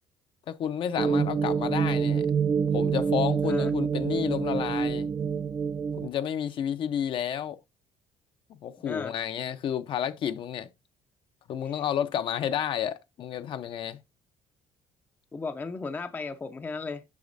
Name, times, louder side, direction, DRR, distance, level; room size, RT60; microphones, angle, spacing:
voice 1, 0.5-2.2 2.7-5.1 6.0-7.6 8.5-10.7 11.5-14.0, left 9 dB, 55° left, 0.7 m, -31 dB
sound 1, 1.0-6.1, right 6 dB, 35° right, 0.8 m, -26 dB
voice 2, 8.8-9.1 11.6-11.8 15.3-17.0, left 4 dB, 20° left, 0.5 m, -35 dB
8.4 x 6.1 x 2.6 m
cardioid pair, 125°, 10 cm